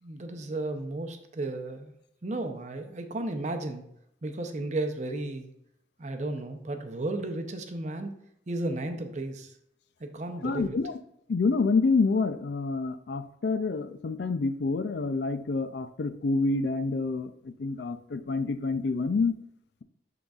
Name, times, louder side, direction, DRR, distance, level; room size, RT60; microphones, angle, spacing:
voice 1, 0.0-1.9 2.2-3.8 4.2-5.5 6.0-8.1 8.5-9.5 10.0-10.8, right 2 dB, 40° right, 6 dB, 0.6 m, -34 dB
voice 2, 10.4-10.9 11.3-19.3, left 3 dB, 65° left, 11 dB, 0.4 m, -27 dB
11.5 x 3.9 x 2.4 m, 0.75 s
head